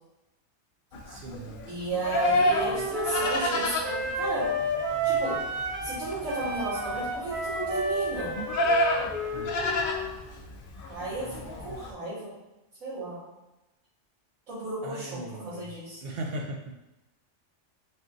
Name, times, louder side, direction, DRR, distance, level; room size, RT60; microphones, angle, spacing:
Livestock farm animals working animals, 0.9-11.9, left 1 dB, 65° left, 0.5 m, -30 dB
voice 1, 1.1-1.7 9.3-9.9 14.8-16.8, right 2 dB, 65° right, 1 dB, 0.6 m, -38 dB
voice 2, 1.7-4.5 5.0-5.4 5.8-8.3 10.9-12.3 12.8-13.2 14.5-16.0, right 2 dB, 80° right, -13 dB, 2.1 m, -34 dB
Wind instrument woodwind instrument, 2.5-6.0 6.3-10.1, right 1 dB, 40° right, 1.0 m, -31 dB
4.2 x 2.6 x 3.6 m, 0.98 s
omnidirectional pair, 1.4 m